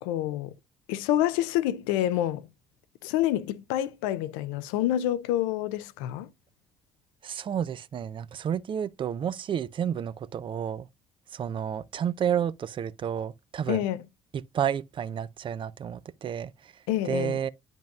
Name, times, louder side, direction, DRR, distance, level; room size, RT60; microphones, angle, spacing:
voice 1, 0.0-0.5 0.9-2.5 3.0-6.3 13.7-14.0 16.9-17.4, left 12 dB, 85° left, 0.4 m, -27 dB
voice 2, 7.2-10.9 11.3-13.8 14.3-17.5, right 8 dB, 45° right, 0.5 m, -31 dB
9.1 x 5.3 x 2.3 m
supercardioid pair, 65°, 12 cm